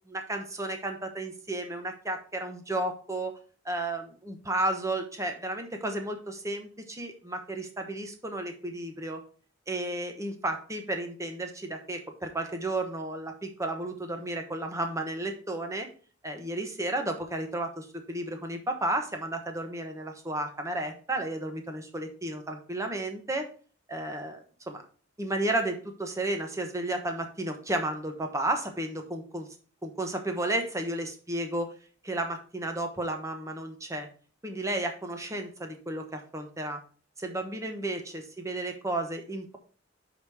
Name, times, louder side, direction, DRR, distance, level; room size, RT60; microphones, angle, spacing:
voice 1, 0.1-3.4 3.6-9.2 9.7-15.9 16.2-23.5 23.9-24.8 25.2-29.5 29.8-31.7 32.0-34.1 34.4-36.8 37.2-39.6, right 1 dB, 15° right, 5 dB, 1.1 m, -33 dB
5.1 x 5.1 x 6.3 m, 0.40 s
head